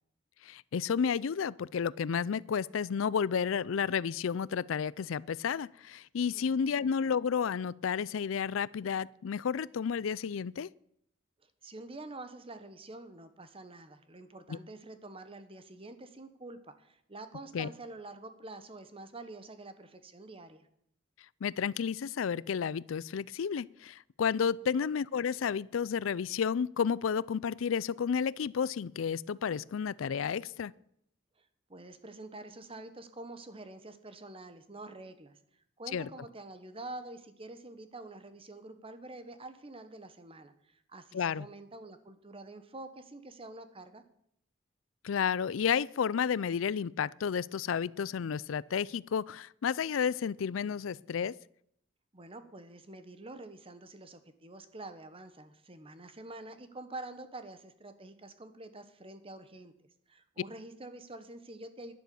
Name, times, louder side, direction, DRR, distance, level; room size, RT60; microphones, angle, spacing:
voice 1, 0.4-10.7 14.5-14.6 17.5-17.7 21.4-30.7 35.9-36.1 41.1-41.5 45.0-51.3, left 7 dB, 80° left, 0.4 m, -31 dB
voice 2, 6.3-6.8 11.4-20.7 24.6-24.7 31.4-35.4 35.8-44.0 52.1-61.9, right 2 dB, 30° right, 1.2 m, -47 dB
11.5 x 10.5 x 7.0 m
head